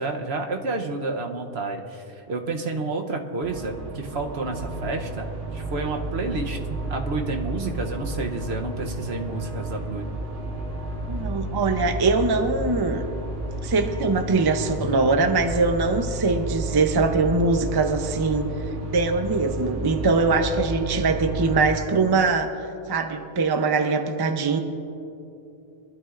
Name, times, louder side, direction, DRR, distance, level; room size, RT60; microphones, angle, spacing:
voice 1, 0.0-10.1, right 3 dB, 65° right, 3 dB, 1.2 m, -30 dB
sound 1, 3.4-21.7, right 2 dB, 85° right, 1.8 m, -32 dB
voice 2, 11.1-13.0 13.6-18.5 18.9-22.5 22.9-24.6, right 3 dB, 25° right, 6 dB, 0.6 m, -22 dB
23.5 x 12.5 x 2.5 m, 2.7 s
omnidirectional pair, 1.2 m